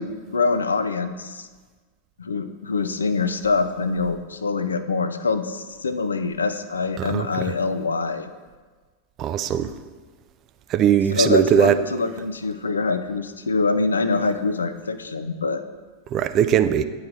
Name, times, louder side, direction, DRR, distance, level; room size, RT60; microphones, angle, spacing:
voice 1, 0.0-1.5 2.2-8.3 11.1-15.6, left 4 dB, 75° left, 11 dB, 0.3 m, -24 dB
voice 2, 7.0-7.5 9.2-9.7 10.7-11.8 16.1-16.8, right 9 dB, 35° right, 10 dB, 0.3 m, -20 dB
9.3 x 3.1 x 3.7 m, 1.4 s
figure-of-eight pair, 90°, 0 cm